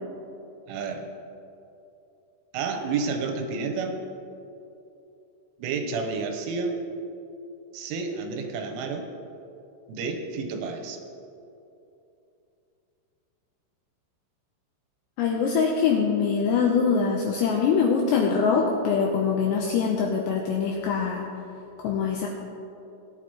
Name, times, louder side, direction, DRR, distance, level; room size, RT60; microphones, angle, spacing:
voice 1, 0.7-1.1 2.5-4.0 5.6-6.8 7.7-9.1 9.9-11.0, right 4 dB, 85° right, 4 dB, 3.3 m, -30 dB
voice 2, 15.2-21.3 21.8-22.3, left 6 dB, 85° left, 0 dB, 2.5 m, -23 dB
18.0 x 9.2 x 3.0 m, 2.8 s
omnidirectional pair, 5.8 m